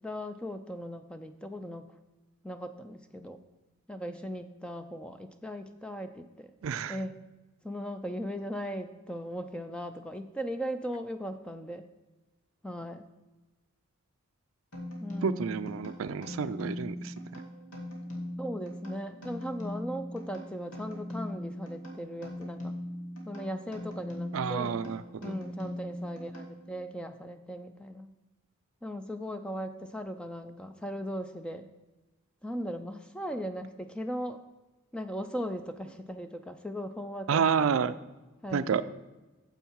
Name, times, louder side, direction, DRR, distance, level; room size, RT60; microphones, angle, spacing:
voice 1, 0.0-1.9 2.4-3.4 3.9-6.5 6.9-7.2 7.6-11.9 12.6-13.1 15.0-15.5 18.4-22.7 23.3-24.8 25.2-28.1 28.8-31.7 32.4-34.4 34.9-37.4 38.4-38.8, equal, 5° left, 8 dB, 0.3 m, -38 dB
voice 2, 6.6-7.0 15.2-17.1 24.3-25.3 37.3-37.9 38.5-38.8, right 6 dB, 70° right, 13 dB, 0.4 m, -29 dB
sound 1, 14.7-26.9, left 1 dB, 85° left, 2.2 m, -40 dB
9.1 x 7.2 x 4.5 m, 1.1 s
head